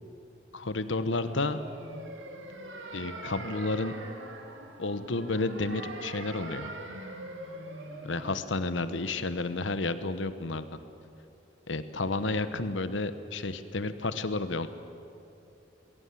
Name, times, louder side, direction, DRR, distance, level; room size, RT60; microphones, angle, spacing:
voice 1, 0.5-1.6 2.9-3.9 4.8-6.7 8.0-10.7 11.7-14.7, left 3 dB, 85° left, 12 dB, 1.1 m, -31 dB
sound 1, 1.2-8.3, right 2 dB, 90° right, 2.6 m, -42 dB
21.0 x 17.5 x 8.5 m, 2.7 s
head